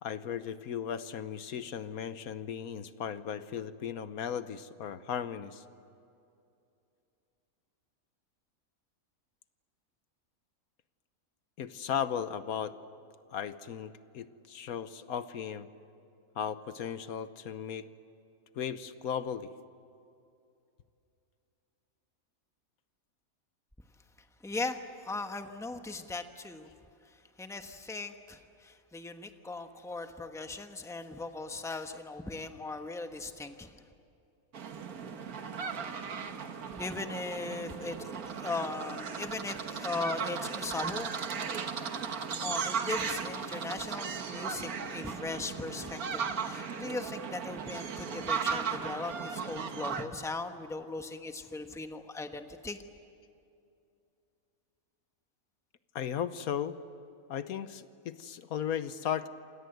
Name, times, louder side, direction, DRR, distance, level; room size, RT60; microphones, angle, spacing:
voice 1, 0.0-5.6 11.6-12.8 13.3-15.7 16.4-17.9 18.6-19.5 55.9-56.8 57.3-59.3, left 8 dB, 80° left, 12 dB, 1.3 m, -36 dB
voice 2, 24.4-26.7 27.4-33.7 36.8-41.5 42.4-52.8, left 3 dB, ahead, 6 dB, 1.1 m, -38 dB
sound 1, 34.5-50.0, right 6 dB, 85° right, 1.8 m, -36 dB
27.5 x 27.0 x 8.0 m, 2.7 s
omnidirectional pair, 1.5 m